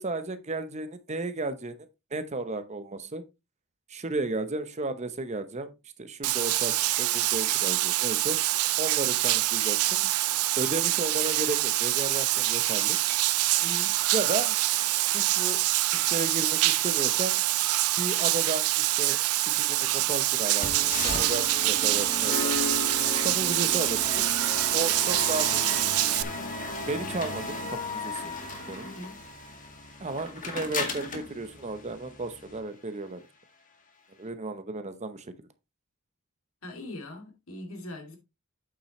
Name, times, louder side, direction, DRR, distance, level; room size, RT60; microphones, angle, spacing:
voice 1, 0.0-1.8 2.1-3.2 3.9-5.7 6.0-8.4 8.8-10.1 10.6-13.0 14.1-14.6 15.1-15.6 15.9-17.4 18.0-22.6 23.2-24.3 24.7-26.1 26.9-28.3 28.7-28.9 30.0-33.3 34.2-35.3, right 2 dB, 30° right, 0.8 m, -34 dB
Bathtub (filling or washing), 6.2-26.2, right 16 dB, 85° right, 0.5 m, -25 dB
voice 2, 13.6-14.0 28.8-29.2 36.6-38.2, left 1 dB, 65° left, 2.6 m, -41 dB
sound 1, 20.6-32.6, left 3 dB, 35° left, 2.0 m, -35 dB
8.6 x 7.3 x 3.1 m
head